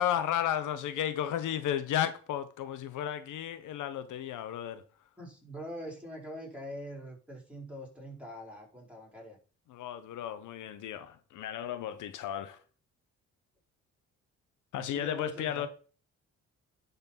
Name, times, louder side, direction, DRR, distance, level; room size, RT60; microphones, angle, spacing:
voice 1, 0.0-4.8 9.7-12.6 14.7-15.7, left 10 dB, 80° left, 1.0 m, -33 dB
voice 2, 5.2-9.4 14.7-15.7, equal, 5° right, 4.7 m, -43 dB
10.5 x 4.2 x 5.8 m
cardioid pair, 90°, 30 cm